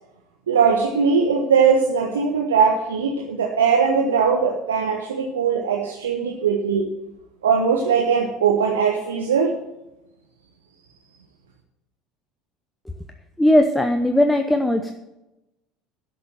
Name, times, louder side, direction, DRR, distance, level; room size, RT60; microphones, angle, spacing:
voice 1, 0.5-6.8 7.4-9.6, right 6 dB, 75° right, 1 dB, 1.2 m, -20 dB
voice 2, 13.4-14.9, left 1 dB, 5° left, 6 dB, 0.9 m, -18 dB
12.0 x 6.8 x 7.7 m, 0.96 s
figure-of-eight pair, 65°, 0 cm